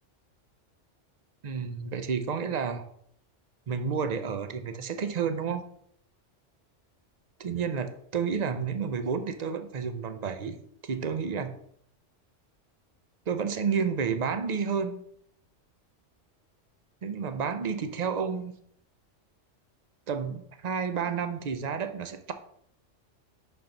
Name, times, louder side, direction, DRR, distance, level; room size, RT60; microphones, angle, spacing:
voice 1, 1.4-2.8 3.7-5.6 7.4-10.6 10.8-11.6 13.3-15.0 17.0-18.6 20.1-22.3, right 6 dB, 50° right, 9 dB, 0.5 m, -30 dB
5.8 x 5.5 x 3.8 m, 0.67 s
omnidirectional pair, 1.3 m